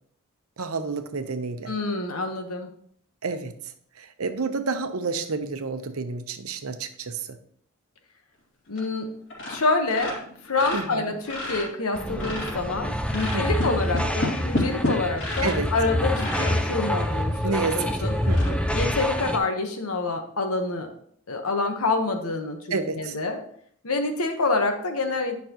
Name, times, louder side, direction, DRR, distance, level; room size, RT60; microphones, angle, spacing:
voice 1, 0.6-1.7 3.2-3.5 4.0-7.4 10.7-11.2 13.3-13.8 15.4-15.7 17.4-18.7 22.7-23.2, right 4 dB, 85° right, 9 dB, 0.8 m, -30 dB
voice 2, 1.7-2.7 8.7-9.1 9.5-10.2 10.4-18.1 18.7-20.9 21.3-23.4 23.8-25.4, left 3 dB, 85° left, 5 dB, 1.2 m, -27 dB
sound 1, 8.7-9.0 9.3-9.6 9.9-12.7 13.1-15.7 16.1-16.6 17.2-17.3 17.7-17.8 18.2-18.5, left 1 dB, 55° left, 2.6 m, -31 dB
sound 2, 11.9-19.4, left 1 dB, 5° left, 0.4 m, -27 dB
10.5 x 5.9 x 3.0 m, 0.66 s
head